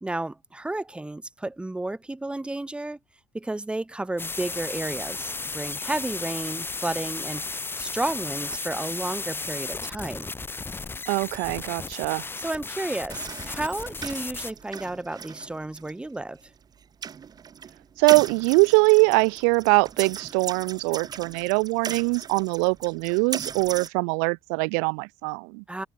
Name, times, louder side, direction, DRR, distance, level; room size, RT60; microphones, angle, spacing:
voice 1, 0.0-3.0 3.3-10.3 12.4-16.4 25.7-25.9, right 2 dB, 10° right, 1.1 m, -32 dB
sound 1, 4.2-14.5, left 3 dB, 25° left, 2.5 m, -34 dB
voice 2, 11.1-12.2 18.0-25.6, right 40 dB or more, 80° right, 0.6 m, -22 dB
sound 2, 13.1-23.9, right 7 dB, 45° right, 4.4 m, -38 dB
hypercardioid pair, 65°, 10 cm